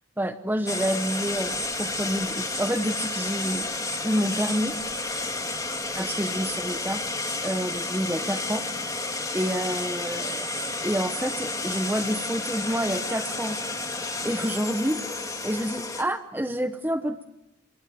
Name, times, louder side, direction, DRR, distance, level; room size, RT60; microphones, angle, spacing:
voice 1, 0.2-3.7 4.0-4.7 5.9-7.0 7.4-8.6 9.3-13.6 14.2-15.0 15.4-17.3, equal, 10° right, 8 dB, 0.9 m, -28 dB
sound 1, 0.7-16.0, left 2 dB, 15° left, 2.0 m, -31 dB
28.0 x 24.0 x 7.6 m, 0.88 s
head